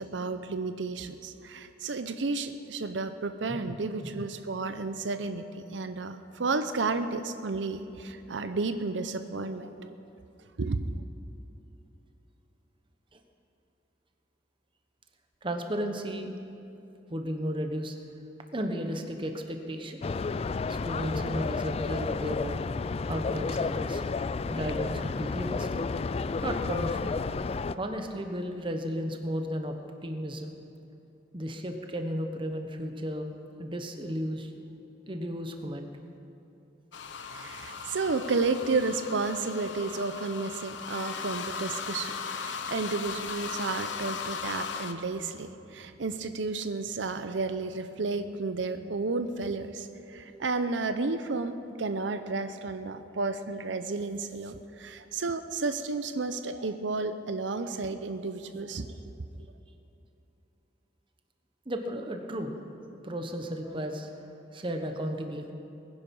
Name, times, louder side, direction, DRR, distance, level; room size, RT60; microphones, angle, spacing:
voice 1, 0.0-10.0 10.6-10.9 37.2-59.1, right 3 dB, 85° right, 9 dB, 0.7 m, -32 dB
voice 2, 15.4-16.3 17.1-17.9 18.5-20.0 20.7-22.6 23.1-24.0 24.5-25.7 26.4-27.1 27.8-29.7 30.0-30.5 31.3-33.3 33.6-34.8 35.1-35.9 61.7-62.6 63.0-64.2 64.5-65.5, equal, 30° right, 5 dB, 1.1 m, -34 dB
sound 1, 20.0-27.8, left 4 dB, 35° left, 0.3 m, -31 dB
sound 2, 36.9-44.9, left 5 dB, 85° left, 0.9 m, -37 dB
21.0 x 10.0 x 5.4 m, 2.9 s
head